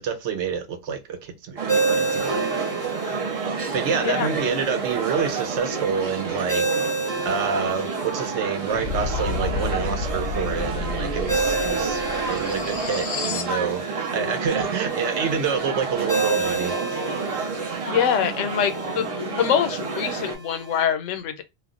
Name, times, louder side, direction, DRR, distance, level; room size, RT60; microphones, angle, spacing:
voice 1, 0.0-2.4 3.7-6.9 7.2-12.0 12.3-16.7, right 6 dB, 75° right, 0.9 m, -27 dB
sound 1, 1.6-20.4, right 4 dB, 50° right, 0.4 m, -29 dB
Ringtone, 1.7-20.8, right 3 dB, 20° right, 0.8 m, -31 dB
sound 2, 8.7-13.6, left 5 dB, 65° left, 0.7 m, -30 dB
voice 2, 17.8-21.4, left 8 dB, 90° left, 0.9 m, -24 dB
2.4 x 2.0 x 3.6 m
omnidirectional pair, 1.2 m